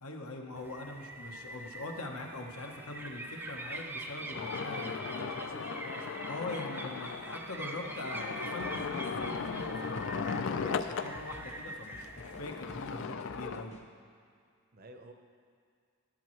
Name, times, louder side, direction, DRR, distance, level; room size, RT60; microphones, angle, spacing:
voice 1, 0.0-5.3 6.3-13.8, left 2 dB, 75° left, 2 dB, 1.1 m, -42 dB
sound 1, 0.6-13.0, right 2 dB, 10° right, 0.5 m, -44 dB
sound 2, 4.3-11.2 12.0-13.6, left 5 dB, 55° left, 0.4 m, -37 dB
voice 2, 5.0-6.2 14.7-15.1, right 2 dB, 40° right, 5 dB, 0.8 m, -50 dB
sound 3, 8.6-13.8, equal, 30° left, 0.8 m, -52 dB
12.5 x 11.5 x 3.2 m, 2.1 s
head